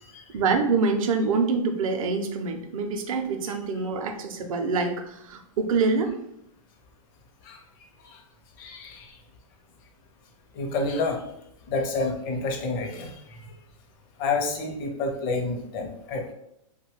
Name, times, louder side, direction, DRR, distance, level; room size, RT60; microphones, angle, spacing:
voice 1, 0.3-6.1, right 4 dB, 70° right, 5 dB, 0.5 m, -25 dB
voice 2, 8.6-9.2 10.5-11.2 11.7-13.5 14.2-16.3, left 3 dB, 40° left, 2 dB, 0.6 m, -29 dB
2.7 x 2.2 x 3.0 m, 0.75 s
hypercardioid pair, 145°, 18 cm